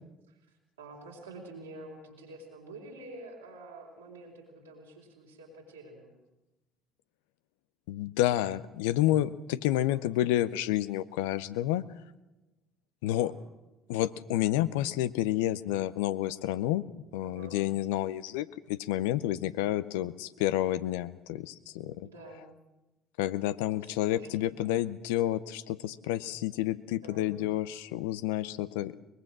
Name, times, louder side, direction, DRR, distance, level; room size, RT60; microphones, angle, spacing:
voice 1, 0.8-6.1 9.8-10.0 13.0-13.4 17.2-17.6 22.0-22.5 23.6-24.5 27.0-27.4, right 2 dB, 90° right, -2 dB, 4.0 m, -48 dB
voice 2, 7.9-11.8 13.0-13.3 13.9-16.8 17.1-22.1 23.2-28.9, left 14 dB, 75° left, 15 dB, 0.6 m, -29 dB
22.5 x 21.0 x 6.1 m, 1.0 s
hypercardioid pair, 55°, 0 cm